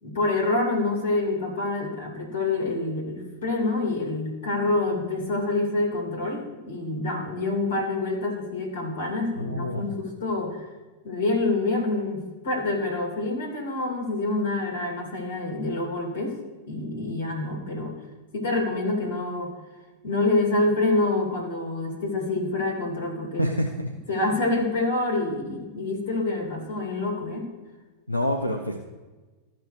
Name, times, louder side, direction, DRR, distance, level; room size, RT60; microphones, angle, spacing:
voice 1, 0.0-10.7 11.0-16.4 16.7-17.9 18.3-19.5 20.0-23.5 24.1-27.5, left 2 dB, 60° left, 0 dB, 2.6 m, -27 dB
voice 2, 9.4-9.8 23.4-23.7 28.1-28.8, left 1 dB, 85° left, 2 dB, 0.6 m, -26 dB
14.5 x 5.8 x 3.3 m, 1.3 s
figure-of-eight pair, 90°, 0 cm